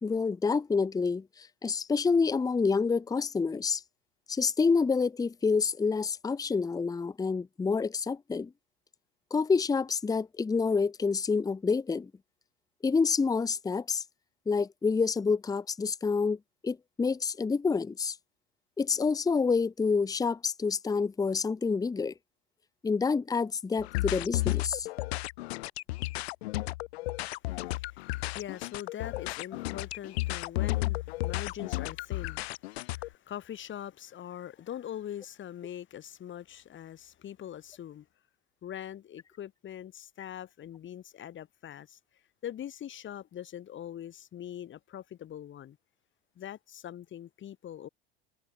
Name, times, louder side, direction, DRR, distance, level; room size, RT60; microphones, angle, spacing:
voice 1, 0.0-3.8 4.3-8.5 9.3-12.1 12.8-14.0 14.5-16.4 16.6-18.2 18.8-22.1 22.8-24.9, left 5 dB, 10° left, 0.7 m, -28 dB
sound 1, 23.8-33.1, left 19 dB, 80° left, 0.5 m, -33 dB
voice 2, 27.6-38.1 38.6-42.0 42.4-45.8 46.4-47.9, left 10 dB, 40° left, 2.4 m, -42 dB
hypercardioid pair, 85°, 31 cm